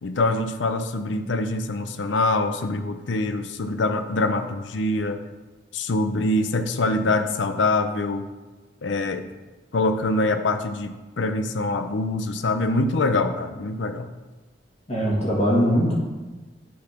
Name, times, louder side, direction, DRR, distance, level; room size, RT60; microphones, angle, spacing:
voice 1, 0.0-5.2 5.7-8.2 8.8-9.3 9.7-14.1, left 2 dB, 75° left, 9 dB, 0.6 m, -24 dB
voice 2, 14.9-15.9, equal, 35° left, -6 dB, 1.7 m, -21 dB
9.3 x 4.2 x 5.7 m, 1.2 s
head